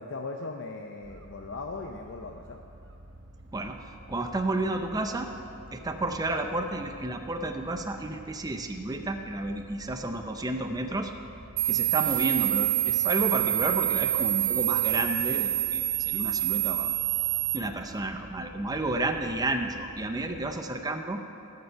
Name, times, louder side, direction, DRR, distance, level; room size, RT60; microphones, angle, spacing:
voice 1, 0.0-2.6, left 3 dB, 60° left, 3 dB, 0.6 m, -38 dB
sound 1, 1.0-20.6, right 1 dB, 60° right, 1.0 m, -50 dB
voice 2, 3.5-5.3 5.7-11.1 11.7-16.9 17.5-21.2, right 2 dB, 20° right, 5 dB, 0.6 m, -31 dB
sound 2, 11.6-17.6, right 14 dB, 80° right, 0.6 m, -26 dB
19.0 x 6.8 x 5.7 m, 2.6 s
head